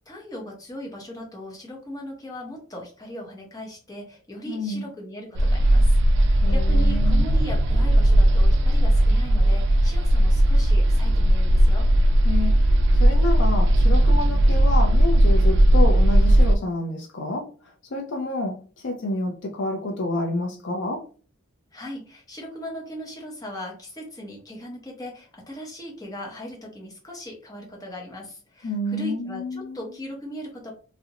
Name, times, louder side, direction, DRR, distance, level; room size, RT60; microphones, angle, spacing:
voice 1, 0.1-11.9 21.7-30.7, equal, 15° left, -1 dB, 0.7 m, -38 dB
voice 2, 4.4-4.9 6.4-7.3 12.2-17.5 17.8-21.0 28.6-29.9, left 1 dB, 55° left, 2 dB, 0.4 m, -29 dB
sound 1, 5.4-16.6, right 1 dB, 55° right, 0.3 m, -17 dB
2.5 x 2.0 x 2.7 m, 0.38 s
head